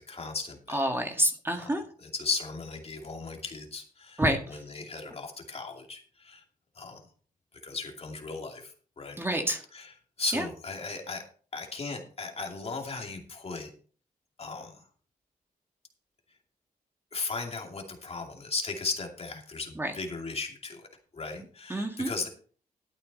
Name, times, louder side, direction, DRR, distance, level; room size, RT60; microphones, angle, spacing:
voice 1, 0.0-0.9 1.5-6.4 6.8-7.0 7.6-9.2 9.7-11.2 11.5-13.7 14.4-14.7 17.1-20.9 21.1-22.3, left 4 dB, 40° left, 2 dB, 2.6 m, -37 dB
voice 2, 0.7-1.8 4.2-4.4 9.2-9.6 10.3-10.4 19.8-19.9 21.7-22.1, right 1 dB, 15° right, 4 dB, 1.8 m, -27 dB
12.5 x 8.6 x 4.2 m, 0.43 s
cardioid pair, 100°, 15 cm